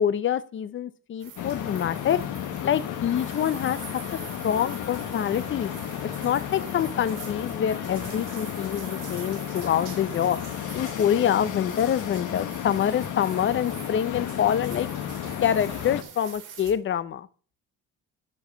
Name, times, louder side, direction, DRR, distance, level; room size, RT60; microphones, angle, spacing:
voice 1, 0.0-2.2 2.6-3.8 4.1-5.7 6.2-10.4 10.7-14.9 15.4-17.3, left 9 dB, 40° left, 15 dB, 0.7 m, -26 dB
sound 1, 1.2-16.7, right 8 dB, 80° right, 2.7 m, -45 dB
sound 2, 1.4-16.0, left 10 dB, 75° left, 1.3 m, -33 dB
10.5 x 4.8 x 6.7 m, 0.41 s
cardioid pair, 130°, 31 cm